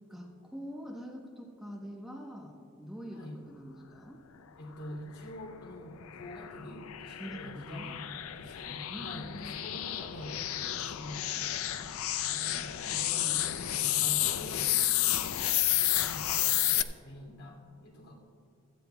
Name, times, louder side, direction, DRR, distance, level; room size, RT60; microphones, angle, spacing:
voice 1, 0.1-4.2 7.2-8.0 8.9-9.5 12.3-12.7, equal, ahead, -1 dB, 1.0 m, -44 dB
voice 2, 4.6-18.2, left 1 dB, 85° left, 0 dB, 2.8 m, -46 dB
sound 1, 5.3-16.8, left 13 dB, 70° left, 0.5 m, -31 dB
16.5 x 13.5 x 2.3 m, 2.4 s
head